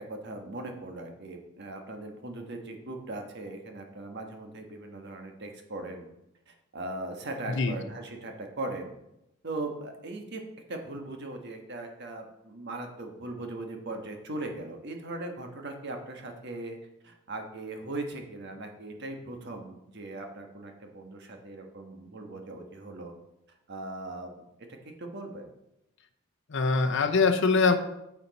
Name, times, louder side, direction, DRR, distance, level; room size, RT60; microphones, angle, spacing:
voice 1, 0.0-6.1 6.5-8.9 9.4-10.4 10.7-16.8 17.0-23.1 23.7-24.3 25.0-25.5, right 2 dB, 55° right, 3 dB, 1.4 m, -39 dB
voice 2, 26.5-27.8, left 4 dB, 60° left, 7 dB, 0.7 m, -23 dB
9.3 x 7.0 x 4.1 m, 0.87 s
head